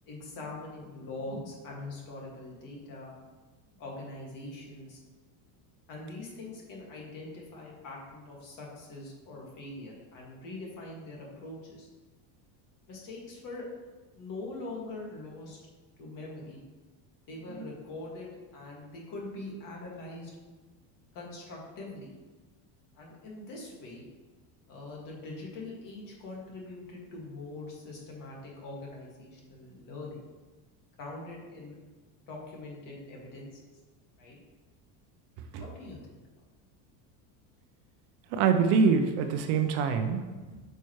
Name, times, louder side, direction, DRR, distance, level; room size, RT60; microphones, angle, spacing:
voice 1, 0.1-3.1 3.7-5.0 5.9-11.9 12.9-13.7 14.1-15.6 16.0-16.6 17.3-20.3 21.1-22.1 23.0-24.1 24.7-30.2 31.0-31.8 32.3-33.6 34.2-34.4 35.6-36.2 40.3-40.6, left 2 dB, 40° left, -2 dB, 2.0 m, -43 dB
voice 2, 38.3-40.2, right 5 dB, 55° right, 7 dB, 0.7 m, -24 dB
9.1 x 5.6 x 3.1 m, 1.3 s
cardioid pair, 160°, 48 cm